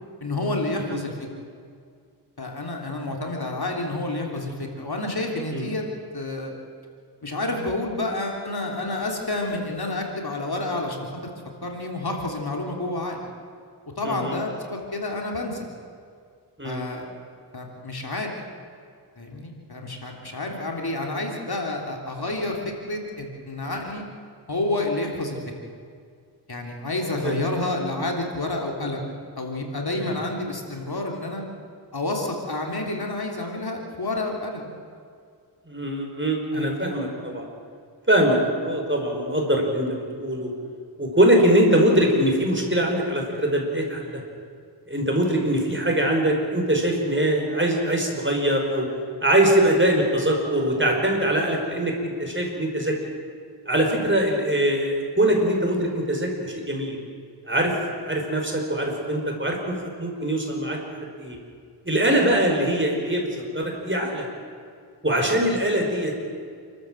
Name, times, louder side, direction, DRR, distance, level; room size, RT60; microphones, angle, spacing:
voice 1, 0.2-1.1 2.4-5.8 6.1-6.5 7.2-11.3 11.6-13.3 14.0-15.7 16.6-17.0 17.5-18.3 19.2-24.0 24.5-25.4 26.5-29.1 29.4-31.4 31.9-34.7 36.5-36.9, left 2 dB, 60° left, 1 dB, 3.4 m, -29 dB
voice 2, 14.0-14.4 16.6-16.8 27.2-27.3 30.0-30.2 35.7-37.5 38.1-40.5 41.0-44.2 44.9-48.9 49.2-53.0 53.7-57.0 57.4-60.8 61.2-61.4 61.8-64.3 65.0-66.2, right 1 dB, 30° right, 1 dB, 5.4 m, -22 dB
28.5 x 13.0 x 7.8 m, 2.2 s
wide cardioid pair, 45°, 42 cm